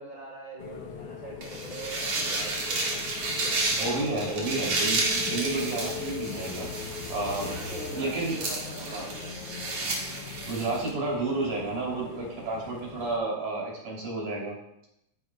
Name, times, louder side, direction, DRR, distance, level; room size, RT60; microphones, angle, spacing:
voice 1, 0.0-4.4 7.2-9.4, right 2 dB, 40° left, -11 dB, 4.3 m, -42 dB
sound 1, 0.6-13.2, left 7 dB, 85° left, 1.3 m, -40 dB
sound 2, 1.4-10.9, right 2 dB, 60° right, 2.8 m, -32 dB
voice 2, 3.8-6.7 7.1-7.6 7.9-8.3 8.9-9.1 10.5-14.6, right 3 dB, 90° right, -3 dB, 4.6 m, -31 dB
13.5 x 10.0 x 2.3 m, 0.82 s
omnidirectional pair, 3.5 m